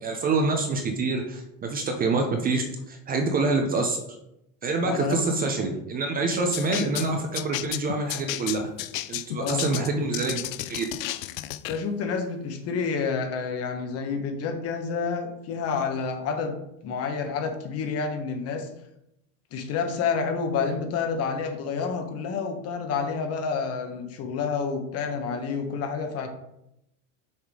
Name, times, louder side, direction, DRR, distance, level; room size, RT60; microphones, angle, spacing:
voice 1, 0.0-4.0 4.6-8.6 9.1-10.9, right 3 dB, 20° right, 4 dB, 0.7 m, -26 dB
voice 2, 4.8-5.2 6.3-6.5 9.3-9.6 11.7-16.6 16.8-18.7 19.5-26.3, left 5 dB, 40° left, 6 dB, 1.1 m, -29 dB
sound 1, 6.5-11.8, left 15 dB, 85° left, 0.6 m, -33 dB
6.3 x 3.6 x 4.8 m, 0.82 s
supercardioid pair, 140°, 39 cm